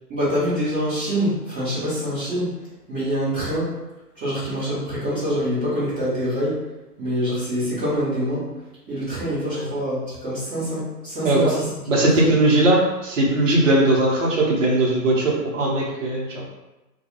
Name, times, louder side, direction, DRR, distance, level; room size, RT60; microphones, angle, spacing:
voice 1, 0.1-2.5 2.9-3.7 4.2-6.6 7.0-8.5 8.9-12.3, equal, 5° right, -16 dB, 0.5 m, -25 dB
voice 2, 11.2-16.5, right 2 dB, 50° right, -3 dB, 0.9 m, -19 dB
2.3 x 2.3 x 2.9 m, 1.0 s
figure-of-eight pair, 120°, 47 cm